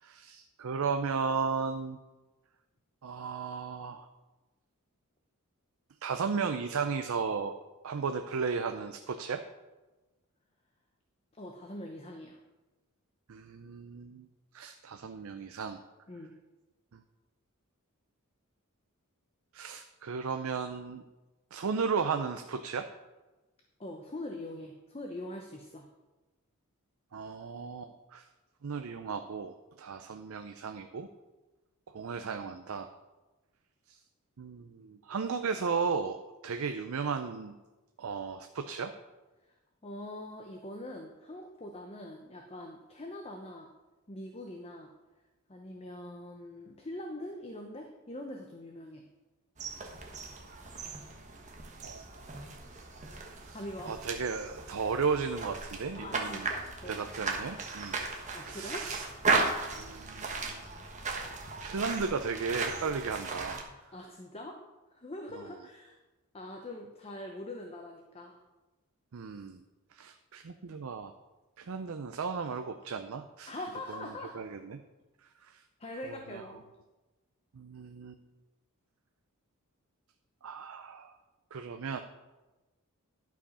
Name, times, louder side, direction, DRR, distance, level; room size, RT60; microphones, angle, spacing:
voice 1, 0.0-2.0 3.0-4.1 6.0-7.6 7.8-9.4 13.3-14.3 14.5-15.8 19.5-21.0 21.5-22.9 27.1-28.3 28.6-31.1 31.9-32.9 33.9-34.0 34.4-37.6 38.0-38.9 51.8-52.0 53.3-56.5 56.9-59.0 59.8-60.6 61.6-63.6 69.1-69.6 69.9-71.1 71.6-73.5 74.3-74.8 75.4-75.6 76.1-76.4 77.5-78.2 80.4-81.1 81.5-82.0, right 5 dB, 70° right, 8 dB, 0.5 m, -35 dB
voice 2, 11.3-12.4 16.1-16.3 23.8-25.9 39.8-43.7 44.1-44.9 45.5-49.1 53.5-53.9 56.0-57.0 58.3-58.9 63.9-64.6 64.9-66.0 66.3-68.4 73.5-74.4 75.8-76.7, left 1 dB, 25° left, 2 dB, 0.7 m, -43 dB
sound 1, 49.6-63.6, right 3 dB, 35° right, 1.2 m, -36 dB
11.5 x 4.8 x 5.5 m, 1.1 s
head